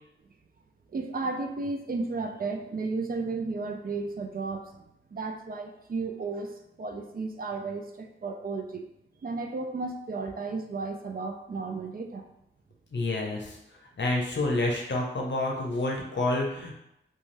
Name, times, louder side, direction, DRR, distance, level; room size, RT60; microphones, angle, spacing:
voice 1, 0.9-4.8 5.1-8.9 9.2-12.2, right 3 dB, 45° right, 4 dB, 0.4 m, -33 dB
voice 2, 12.9-13.6 14.0-16.7, left 2 dB, 60° left, -1 dB, 0.6 m, -28 dB
2.6 x 2.3 x 3.1 m, 0.83 s
cardioid pair, 45°, 21 cm